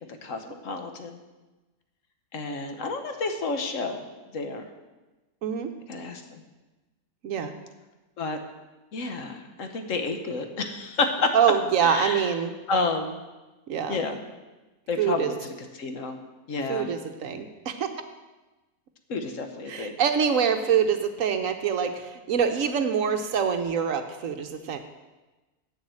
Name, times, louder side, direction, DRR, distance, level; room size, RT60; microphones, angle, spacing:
voice 1, 0.2-1.2 2.3-4.0 4.3-4.7 5.9-6.2 8.2-8.4 8.9-11.3 11.8-12.3 12.7-13.2 13.9-14.2 14.9-16.2 16.5-16.9 19.1-20.0, left 3 dB, 60° left, 6 dB, 1.2 m, -30 dB
voice 2, 11.3-12.5 13.7-14.0 15.0-15.3 16.7-17.9 19.7-24.8, right 7 dB, 65° right, 7 dB, 1.0 m, -25 dB
7.9 x 7.2 x 7.6 m, 1.1 s
omnidirectional pair, 1.6 m